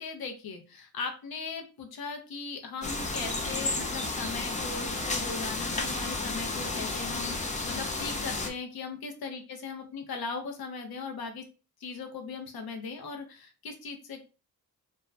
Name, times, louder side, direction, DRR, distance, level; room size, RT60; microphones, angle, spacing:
voice 1, 0.0-11.4 11.8-14.2, left 4 dB, 75° left, 4 dB, 0.8 m, -39 dB
sound 1, 2.8-8.5, left 3 dB, 20° left, 0.4 m, -32 dB
2.6 x 2.2 x 3.2 m, 0.32 s
wide cardioid pair, 140°, 37 cm